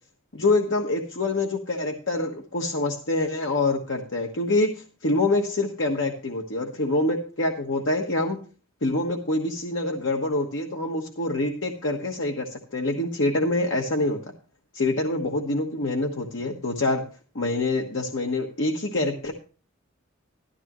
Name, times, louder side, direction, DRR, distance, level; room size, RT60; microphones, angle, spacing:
voice 1, 0.3-8.4 8.8-14.2 14.7-17.0 17.3-19.3, left 2 dB, 60° left, 1 dB, 1.3 m, -26 dB
13.0 x 12.0 x 3.0 m, 0.37 s
head